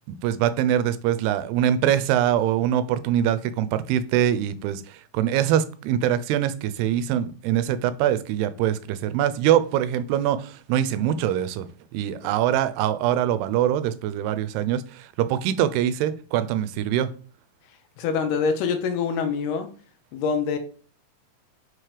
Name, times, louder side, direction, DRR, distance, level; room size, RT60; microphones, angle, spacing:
voice 1, 0.1-11.7 11.9-17.1, right 10 dB, 90° right, 13 dB, 2.6 m, -23 dB
voice 2, 18.0-19.7 20.1-20.6, left 5 dB, 80° left, 7 dB, 2.9 m, -25 dB
6.3 x 4.6 x 4.9 m, 0.40 s
omnidirectional pair, 4.6 m